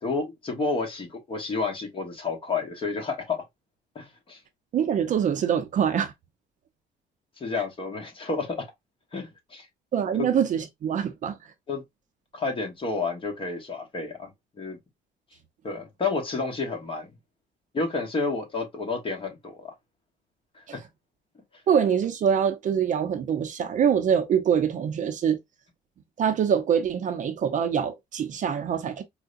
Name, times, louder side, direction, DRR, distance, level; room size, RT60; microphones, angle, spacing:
voice 1, 0.0-3.4 3.9-4.4 7.4-8.7 9.1-9.7 10.1-10.3 11.7-11.8 12.3-14.3 14.6-14.8 15.6-17.1 17.7-19.7 20.5-20.8, left 4 dB, 30° left, 1.2 m, -30 dB
voice 2, 4.7-6.1 9.9-11.4 21.7-25.4 26.2-29.0, right 8 dB, 50° right, 0.6 m, -24 dB
4.5 x 2.2 x 2.5 m
cardioid pair, 110°, 17 cm